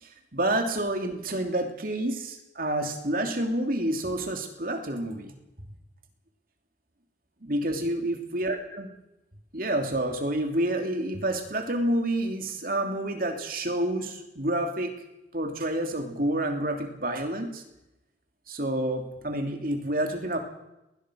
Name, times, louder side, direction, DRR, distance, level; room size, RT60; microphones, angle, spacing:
voice 1, 0.0-5.3 7.4-8.9 9.5-14.9 15.3-17.6 18.5-20.4, right 1 dB, 50° right, 4 dB, 3.1 m, -29 dB
21.0 x 19.5 x 6.4 m, 0.93 s
head